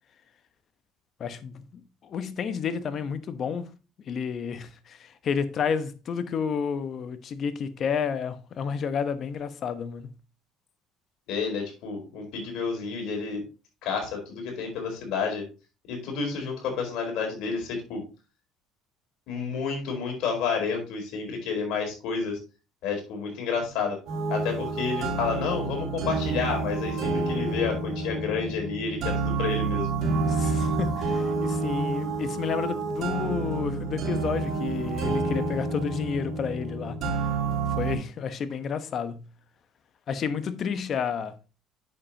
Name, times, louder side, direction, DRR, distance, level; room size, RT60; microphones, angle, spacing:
voice 1, 1.2-3.7 4.0-10.1 30.3-37.1 37.8-39.3 40.1-41.3, left 6 dB, 50° left, 1.0 m, -31 dB
voice 2, 11.3-13.4 13.8-15.5 15.9-18.0 19.3-22.4 22.8-24.0 24.3-29.9, left 5 dB, 70° left, 4.1 m, -30 dB
sound 1, 24.1-38.0, right 3 dB, 60° right, 4.0 m, -29 dB
8.5 x 7.0 x 2.9 m
supercardioid pair, 85°, 0 cm